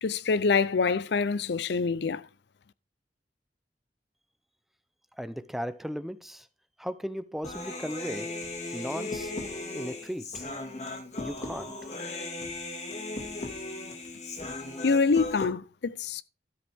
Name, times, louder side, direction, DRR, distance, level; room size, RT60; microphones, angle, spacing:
voice 1, 0.0-2.3 14.8-16.2, left 4 dB, 65° left, 0.5 m, -26 dB
voice 2, 5.2-6.5 6.8-8.3 8.7-9.3 9.7-10.5 11.2-11.7, equal, ahead, 0.6 m, -36 dB
Human voice, 7.4-15.5, left 2 dB, 40° left, 1.9 m, -37 dB
13.0 x 7.9 x 3.5 m
head